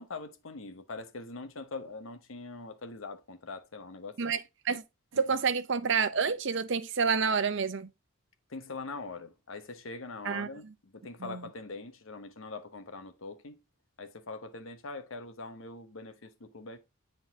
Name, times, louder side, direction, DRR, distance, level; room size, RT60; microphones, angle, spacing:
voice 1, 0.0-4.2 8.5-13.6 14.0-16.8, left 3 dB, 70° left, 0.9 m, -43 dB
voice 2, 5.1-7.9 10.2-10.5 11.2-11.4, right 5 dB, 60° right, 0.7 m, -28 dB
9.7 x 3.8 x 2.8 m
head